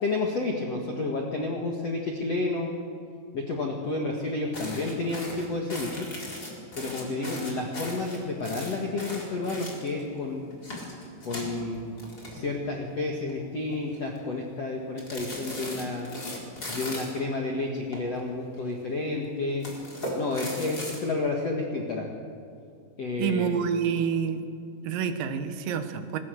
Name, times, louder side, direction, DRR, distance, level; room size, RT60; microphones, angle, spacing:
voice 1, 0.0-2.7 3.3-6.1 6.8-10.4 11.2-11.9 12.3-16.1 16.7-19.7 20.2-22.1 23.0-23.5, left 3 dB, 60° left, 0 dB, 1.6 m, -30 dB
sound 1, 4.5-10.1 10.5-12.8 13.1-13.3 13.7-14.2 15.0-17.2 17.9-18.7 19.5-21.0, left 1 dB, 20° left, 4.1 m, -38 dB
voice 2, 23.2-24.4 24.8-26.2, right 7 dB, 80° right, 8 dB, 4.1 m, -27 dB
25.5 x 21.0 x 6.6 m, 2.5 s
omnidirectional pair, 5.9 m